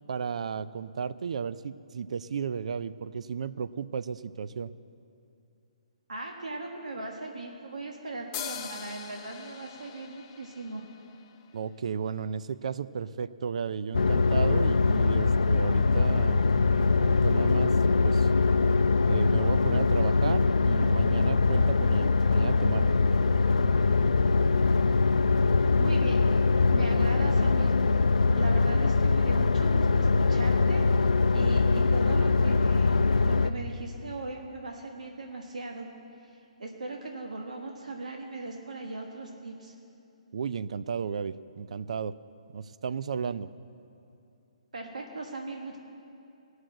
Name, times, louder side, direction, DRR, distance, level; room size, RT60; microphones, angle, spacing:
voice 1, 0.1-4.7 11.5-16.4 17.0-17.8 18.0-18.3 19.1-23.0 40.3-42.2 42.5-43.5, right 6 dB, 65° right, 15 dB, 0.4 m, -34 dB
voice 2, 6.1-10.8 25.8-26.2 26.7-27.7 28.3-33.0 33.2-35.9 36.2-39.7 44.7-45.8, right 2 dB, 85° right, 0 dB, 1.4 m, -39 dB
sound 1, 8.3-11.9, left 9 dB, 25° left, 0.6 m, -42 dB
sound 2, 13.9-33.5, left 4 dB, 90° left, 0.4 m, -23 dB
17.5 x 6.4 x 7.6 m, 2.7 s
hypercardioid pair, 155°, 4 cm